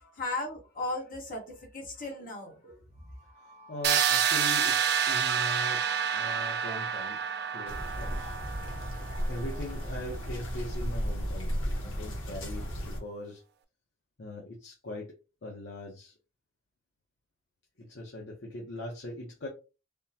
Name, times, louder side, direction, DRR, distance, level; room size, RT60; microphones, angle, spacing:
voice 1, 0.0-3.0, left 2 dB, 45° left, 1.1 m, -37 dB
sound 1, 3.0-10.9, left 4 dB, 30° right, 0.8 m, -51 dB
voice 2, 3.4-5.8 6.1-7.2 7.5-8.4 9.3-13.4 14.2-15.2 15.4-16.1 17.8-19.5, left 1 dB, 65° left, 0.7 m, -40 dB
sound 2, 3.8-9.6, right 8 dB, 50° right, 0.3 m, -29 dB
sound 3, 7.7-13.0, equal, 80° left, 1.1 m, -34 dB
3.5 x 2.1 x 2.7 m
head